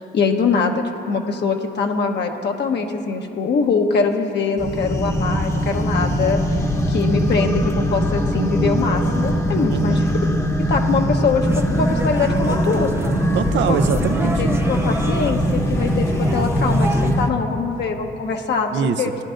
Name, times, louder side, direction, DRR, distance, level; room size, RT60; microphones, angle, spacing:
voice 1, 0.0-6.4 6.9-10.0 10.7-11.5 11.8-12.9 13.7-13.8 14.4-19.1, left 5 dB, 60° left, 3 dB, 1.0 m, -23 dB
sound 1, 4.6-17.3, equal, 15° left, 0.9 m, -21 dB
voice 2, 9.7-10.1 13.3-14.6 18.7-19.2, right 7 dB, 65° right, 10 dB, 0.6 m, -23 dB
sound 2, 11.4-17.1, right 2 dB, 10° right, 0.5 m, -30 dB
17.0 x 10.5 x 2.5 m, 2.8 s
cardioid pair, 90°, 20 cm